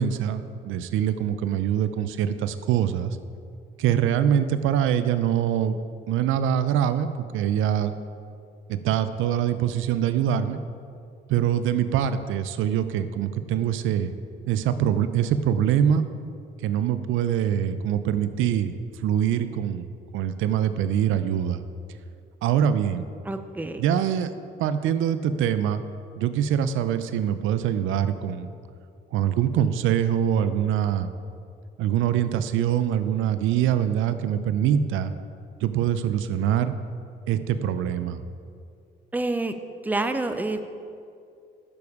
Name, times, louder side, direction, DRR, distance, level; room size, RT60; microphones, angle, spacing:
voice 1, 0.0-3.2 3.8-5.8 6.1-7.9 8.7-10.6 11.3-14.1 14.5-16.0 16.6-19.9 20.1-21.6 22.4-23.0 23.8-24.3 24.6-25.8 26.2-28.5 29.1-31.1 31.8-35.1 35.6-36.7 37.3-38.2, right 9 dB, 90° right, 12 dB, 0.5 m, -24 dB
voice 2, 23.2-23.8 39.1-39.5 39.8-40.7, right 2 dB, 10° right, 8 dB, 0.6 m, -27 dB
9.6 x 7.2 x 4.8 m, 2.4 s
cardioid pair, 90°, 20 cm